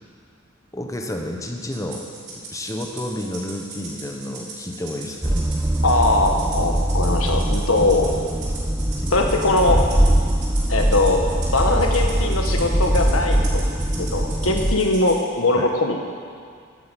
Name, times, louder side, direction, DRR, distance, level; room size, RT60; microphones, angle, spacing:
voice 1, 0.7-2.0 2.3-5.4 15.6-15.7, left 1 dB, 15° left, 2 dB, 1.1 m, -30 dB
Rattle (instrument), 1.7-15.2, right 3 dB, 55° right, 4.2 m, -38 dB
sound 1, 5.2-14.8, right 1 dB, 15° right, 0.6 m, -22 dB
voice 2, 5.8-8.1 9.1-9.8 10.7-11.2 11.5-13.6 14.0-16.0, left 2 dB, 85° left, 2 dB, 1.7 m, -20 dB
12.0 x 10.0 x 8.2 m, 2.1 s
head